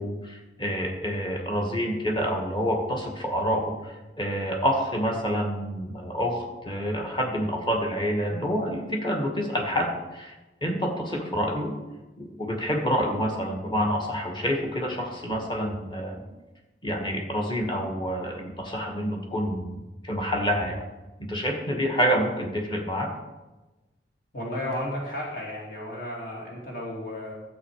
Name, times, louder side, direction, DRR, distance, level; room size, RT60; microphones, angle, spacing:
voice 1, 0.0-6.4 6.7-10.3 10.6-11.7 12.2-16.2 16.8-20.8 21.2-23.1, equal, 25° left, 1 dB, 1.9 m, -28 dB
voice 2, 24.3-27.3, left 1 dB, 50° left, -3 dB, 2.6 m, -33 dB
12.0 x 7.8 x 4.9 m, 1.1 s
head